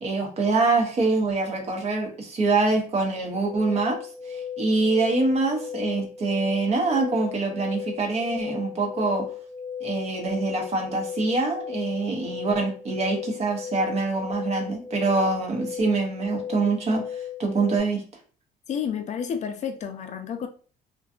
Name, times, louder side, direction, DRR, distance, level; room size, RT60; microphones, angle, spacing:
voice 1, 0.0-4.0 4.3-9.2 9.8-17.0 17.4-18.0, right 3 dB, 40° right, 0.7 m, -25 dB
sound 1, 3.5-17.8, left 8 dB, 10° left, 0.8 m, -36 dB
voice 2, 18.7-20.5, left 7 dB, 45° left, 0.4 m, -30 dB
2.6 x 2.3 x 2.3 m
cardioid pair, 110°, 17 cm